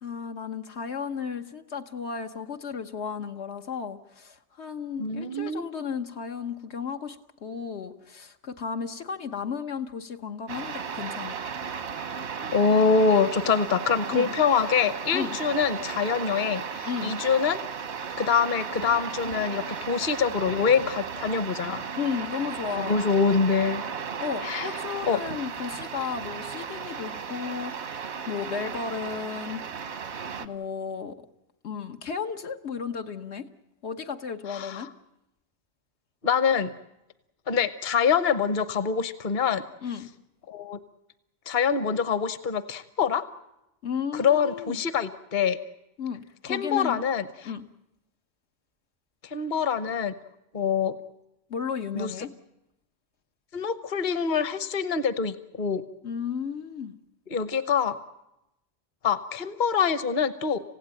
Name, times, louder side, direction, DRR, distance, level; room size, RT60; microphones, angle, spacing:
voice 1, 0.0-11.4 14.1-14.3 15.1-15.4 16.8-17.1 22.0-23.0 24.2-29.6 30.4-31.2 31.6-33.5 33.8-34.9 39.8-40.1 43.8-44.8 46.0-47.0 47.4-47.6 51.5-52.3 56.0-56.9, left 6 dB, 85° left, 5 dB, 1.4 m, -34 dB
voice 2, 5.0-5.7 12.5-17.6 18.2-21.8 22.8-23.8 24.4-24.7 25.1-25.2 34.5-34.9 36.2-36.7 37.5-39.6 40.5-40.8 41.5-43.2 44.1-45.6 46.4-47.5 49.2-50.1 50.5-50.9 51.9-52.1 53.5-55.8 57.3-58.0 59.0-60.6, left 6 dB, 50° left, 13 dB, 1.1 m, -25 dB
sound 1, 10.5-30.5, right 6 dB, 85° right, 1.3 m, -35 dB
27.0 x 16.0 x 9.0 m, 0.90 s
omnidirectional pair, 1.1 m